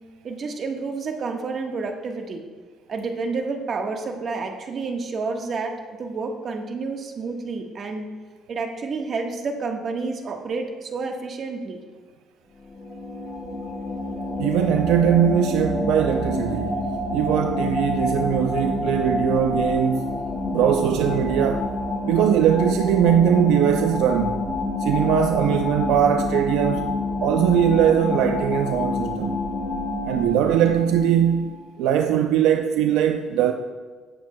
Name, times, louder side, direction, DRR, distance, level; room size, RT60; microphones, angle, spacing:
voice 1, 0.2-2.4 2.9-8.1 8.5-11.8, right 4 dB, 45° right, 1.3 m, -29 dB
sound 1, 12.6-31.5, left 2 dB, 20° left, 1.8 m, -27 dB
voice 2, 14.4-16.8 17.1-20.2 20.5-21.7 22.0-24.4 24.8-26.9 27.2-29.4 30.0-31.5 31.8-33.5, right 9 dB, 80° right, 0.5 m, -20 dB
17.5 x 7.6 x 2.2 m
cardioid pair, 95°, 0 cm